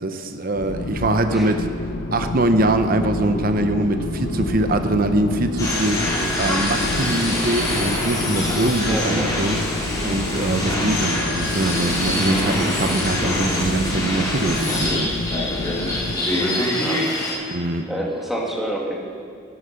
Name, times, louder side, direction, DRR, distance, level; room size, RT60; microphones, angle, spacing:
voice 1, 0.0-1.7 2.1-9.6 10.0-15.1 17.5-17.9, right 2 dB, 50° right, 8 dB, 0.8 m, -23 dB
sound 1, 0.5-16.2, left 2 dB, 65° left, 0.7 m, -29 dB
sound 2, 2.8-14.7, equal, 65° right, 1.3 m, -39 dB
sound 3, 5.6-17.3, left 1 dB, 20° left, 2.8 m, -25 dB
voice 2, 8.8-9.4 16.3-17.0 17.4-19.1, right 1 dB, ahead, -3 dB, 1.9 m, -29 dB
12.5 x 9.9 x 5.7 m, 2.4 s
head